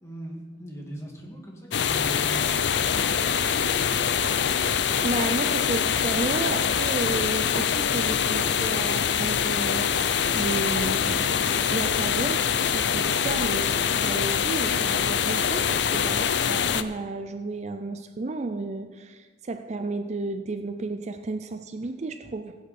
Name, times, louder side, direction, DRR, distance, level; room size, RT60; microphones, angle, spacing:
voice 1, 0.0-4.2 12.9-13.1, right 1 dB, 15° left, -1 dB, 1.9 m, -41 dB
sound 1, 1.7-16.8, left 7 dB, 70° left, 0.5 m, -24 dB
voice 2, 5.0-22.6, right 3 dB, 40° right, 8 dB, 0.5 m, -32 dB
17.0 x 8.1 x 4.3 m, 1.4 s
head